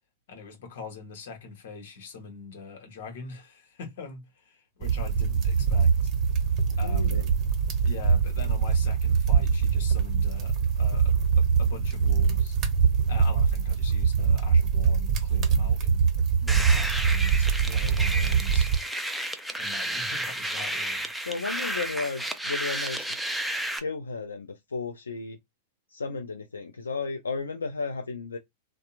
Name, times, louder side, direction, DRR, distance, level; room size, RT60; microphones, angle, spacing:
voice 1, 0.3-6.1 6.8-7.3 7.8-12.6 13.1-16.1 16.4-18.7 19.6-21.1, left 5 dB, 65° left, 1.1 m, -43 dB
sound 1, 4.8-18.8, right 6 dB, 40° right, 0.8 m, -23 dB
voice 2, 6.7-7.3 21.2-23.2 23.7-25.4 25.9-28.4, left 4 dB, 90° left, 0.4 m, -34 dB
sound 2, 16.5-23.8, right 1 dB, ahead, 0.5 m, -32 dB
2.8 x 2.2 x 2.4 m
hypercardioid pair, 105°, 0 cm